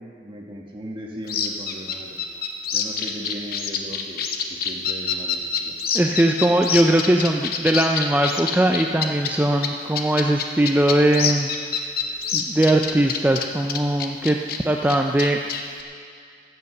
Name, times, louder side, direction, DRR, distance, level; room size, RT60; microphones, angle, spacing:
voice 1, 0.0-2.2 2.7-5.8, equal, 30° right, -1 dB, 1.8 m, -37 dB
sound 1, 1.3-9.3 9.6-9.7 9.9-14.6 14.8-15.8, left 7 dB, 55° left, 0.8 m, -26 dB
voice 2, 5.9-11.5 12.3-14.4 14.6-15.4, right 1 dB, 10° right, 2 dB, 0.5 m, -20 dB
14.5 x 8.2 x 6.7 m, 2.3 s
head